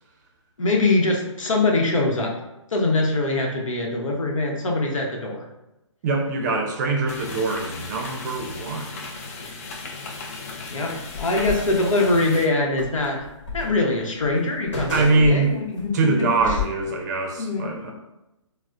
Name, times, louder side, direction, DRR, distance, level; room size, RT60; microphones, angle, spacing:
voice 1, 0.6-2.3 2.7-5.5 9.4-9.6 10.7-13.2 13.5-16.6 17.4-17.9, left 2 dB, 80° left, 0 dB, 0.8 m, -23 dB
voice 2, 6.0-9.0 14.9-15.6 15.9-17.9, right 3 dB, 35° right, 1 dB, 0.5 m, -23 dB
sound 1, 7.1-12.5, left 3 dB, 30° left, 0.4 m, -36 dB
sound 2, 11.1-12.3 12.8-15.9 16.3-16.7, left 6 dB, 65° left, 1.4 m, -33 dB
4.0 x 2.0 x 2.4 m, 0.94 s
hypercardioid pair, 145°, 16 cm